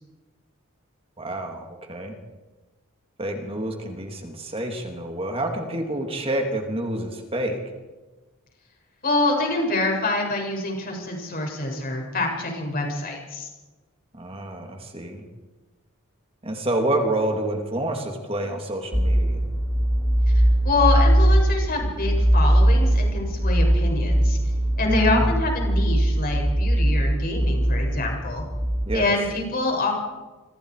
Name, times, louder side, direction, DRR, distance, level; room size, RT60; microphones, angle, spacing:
voice 1, 1.2-2.1 3.2-7.6 14.1-15.2 16.4-19.5 24.8-25.3 28.9-29.1, right 1 dB, 25° right, 3 dB, 3.1 m, -28 dB
voice 2, 9.0-13.5 20.3-24.4 24.8-28.4 28.9-29.9, left 2 dB, 45° left, 1 dB, 7.6 m, -26 dB
sound 1, 18.9-28.9, right 1 dB, ahead, 4.2 m, -20 dB
28.5 x 25.0 x 5.1 m, 1.2 s
head